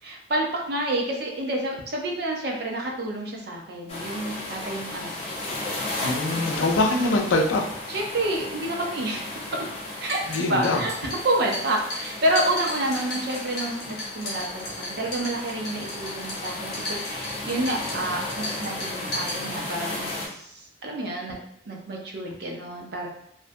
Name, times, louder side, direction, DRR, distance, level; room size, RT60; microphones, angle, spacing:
voice 1, 0.0-5.1 7.9-9.7 10.0-23.1, right 1 dB, 55° right, 0 dB, 0.5 m, -29 dB
sound 1, 3.9-20.3, left 2 dB, 30° left, 0.5 m, -34 dB
voice 2, 6.0-7.6 10.3-10.8, left 2 dB, 90° left, 2 dB, 0.5 m, -23 dB
sound 2, 9.9-19.9, left 1 dB, 60° left, 0.9 m, -36 dB
2.6 x 2.1 x 2.5 m, 0.75 s
head